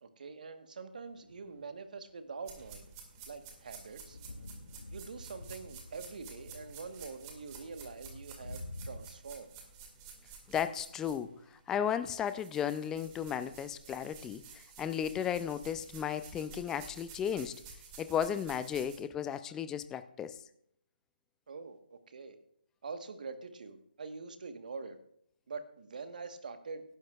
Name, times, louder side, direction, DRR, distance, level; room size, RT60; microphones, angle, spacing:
voice 1, 0.0-2.9 3.3-4.2 4.9-9.5 21.5-21.8 22.1-22.4 22.8-25.0 25.5-26.8, right 4 dB, 55° right, 1.3 m, -45 dB
sound 1, 1.2-1.7 2.6-9.0, left 1 dB, 75° left, 2.1 m, -49 dB
sound 2, 2.5-11.6 11.9-19.0, right 6 dB, 20° right, 1.9 m, -52 dB
voice 2, 10.5-17.6 18.0-20.4, left 8 dB, 10° left, 0.4 m, -35 dB
17.5 x 11.5 x 2.4 m
figure-of-eight pair, 150°, 5 cm